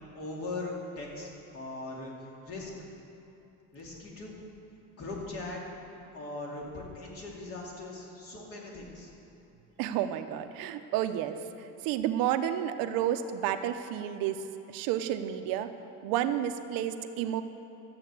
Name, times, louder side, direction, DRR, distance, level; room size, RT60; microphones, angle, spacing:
voice 1, 0.1-2.1 2.4-2.9 3.7-4.4 5.0-5.6 6.1-9.1, left 2 dB, 40° left, -2 dB, 2.7 m, -40 dB
voice 2, 9.8-15.7 16.0-17.4, right 11 dB, 85° right, 9 dB, 0.8 m, -31 dB
12.5 x 8.0 x 8.2 m, 2.9 s
cardioid pair, 165°, 34 cm